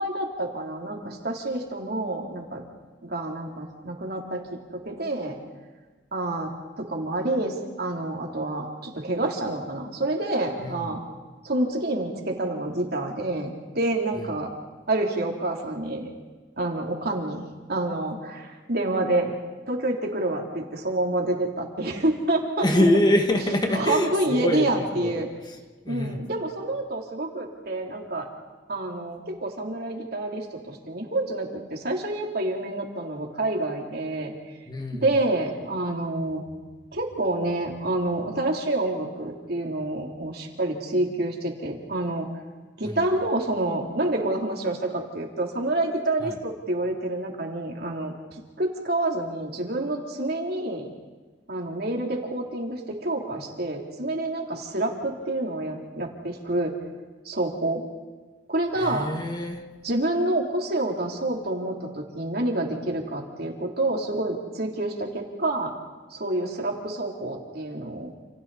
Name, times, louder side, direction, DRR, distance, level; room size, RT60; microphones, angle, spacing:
voice 1, 0.0-2.6 3.0-5.4 6.1-6.5 6.8-11.0 11.4-14.5 14.9-16.1 16.6-17.4 17.7-19.3 19.7-22.7 23.7-25.3 25.9-28.3 28.7-34.3 35.0-36.4 36.9-42.3 42.8-48.1 48.6-50.9 51.5-56.7 57.3-57.8 58.5-59.1 59.8-65.7 66.1-68.1, right 2 dB, 60° right, 1 dB, 3.4 m, -28 dB
voice 2, 10.6-11.0 14.1-14.3 22.6-25.6 25.9-26.2 34.7-35.2 42.8-43.0 46.2-46.3 58.8-59.6, left 1 dB, 25° left, 3 dB, 2.0 m, -25 dB
29.0 x 29.0 x 4.2 m, 1.3 s
head